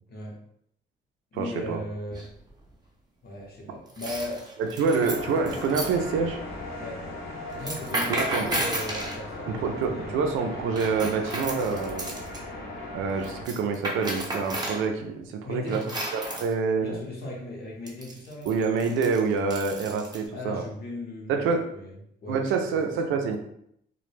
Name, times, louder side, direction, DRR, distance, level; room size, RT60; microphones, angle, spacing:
voice 1, 0.1-0.4 1.3-2.2 3.2-4.4 4.9-5.2 6.8-7.1 7.6-10.2 15.4-15.9 16.8-18.5 20.3-21.4 21.7-21.9 22.2-22.5, left 1 dB, 50° left, -1 dB, 0.9 m, -37 dB
voice 2, 1.3-1.8 4.6-6.4 8.1-8.6 9.5-12.1 12.9-15.8 16.4-17.0 18.4-20.7 21.3-21.6 22.3-23.4, right 5 dB, 85° right, 4 dB, 0.4 m, -27 dB
sound 1, 2.1-2.5 3.9-5.9 7.5-9.2 10.8-12.4 13.2-14.8 15.7-16.5 17.9-20.2, right 1 dB, 20° right, 0.7 m, -33 dB
sound 2, 5.0-13.4, left 2 dB, 90° left, 0.8 m, -37 dB
2.2 x 2.0 x 3.1 m, 0.73 s
cardioid pair, 90°, 20 cm